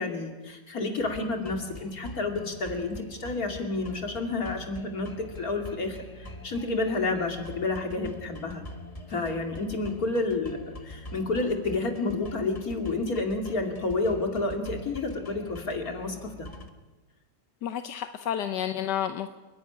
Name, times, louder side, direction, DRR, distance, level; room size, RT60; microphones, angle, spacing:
voice 1, 0.0-8.6 9.1-16.5, left 3 dB, 60° left, 4 dB, 3.1 m, -30 dB
sound 1, 1.0-16.7, equal, 20° left, 1.7 m, -44 dB
voice 2, 17.6-19.3, left 10 dB, 85° left, 8 dB, 1.5 m, -30 dB
29.5 x 11.0 x 10.0 m, 1.2 s
omnidirectional pair, 1.8 m